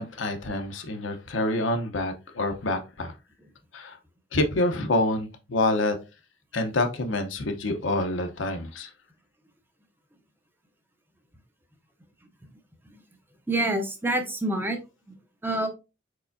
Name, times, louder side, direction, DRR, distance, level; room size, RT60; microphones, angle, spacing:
voice 1, 0.0-3.1 3.7-4.0 4.3-6.0 6.5-8.9, left 2 dB, 75° left, 0.8 m, -27 dB
voice 2, 13.5-14.8 15.4-15.7, right 1 dB, 10° right, 0.7 m, -26 dB
4.7 x 4.3 x 2.5 m
head